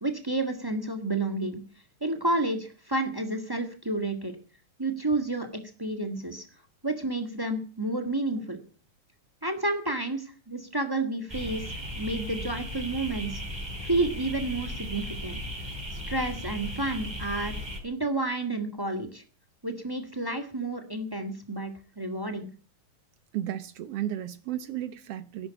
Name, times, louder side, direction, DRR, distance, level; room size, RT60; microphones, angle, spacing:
voice 1, 0.0-1.6 2.0-4.3 4.8-6.5 6.8-8.6 9.4-13.4 13.8-15.4 15.9-17.6 17.8-19.2 19.6-21.7 22.0-22.5, right 2 dB, 35° right, 0.3 m, -30 dB
sound 1, 11.3-17.8, equal, 5° right, 4.5 m, -36 dB
voice 2, 23.3-25.5, right 12 dB, 70° right, 1.4 m, -33 dB
14.0 x 11.5 x 8.3 m
omnidirectional pair, 3.8 m